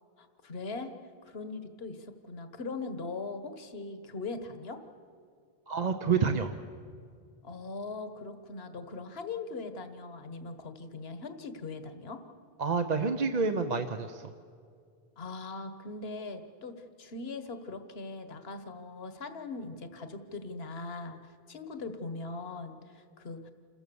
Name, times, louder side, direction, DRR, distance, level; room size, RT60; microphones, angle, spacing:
voice 1, 0.2-0.9 1.2-4.8 7.4-12.2 15.2-23.5, left 3 dB, 70° left, 9 dB, 1.5 m, -40 dB
voice 2, 5.7-6.5 12.6-14.3, right 5 dB, 45° right, 7 dB, 0.8 m, -28 dB
28.0 x 14.5 x 7.0 m, 2.3 s
omnidirectional pair, 1.1 m